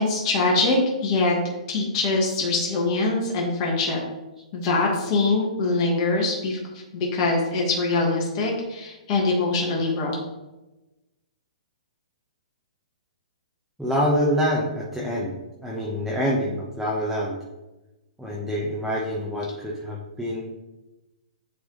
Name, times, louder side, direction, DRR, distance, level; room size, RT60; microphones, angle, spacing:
voice 1, 0.0-1.4 1.7-4.0 4.5-6.6 6.9-10.1, left 3 dB, 40° left, -1 dB, 1.5 m, -23 dB
voice 2, 13.8-15.3 15.6-17.4 18.2-20.5, equal, ahead, -5 dB, 1.0 m, -26 dB
9.5 x 3.5 x 3.8 m, 1.0 s
hypercardioid pair, 140°, 4 cm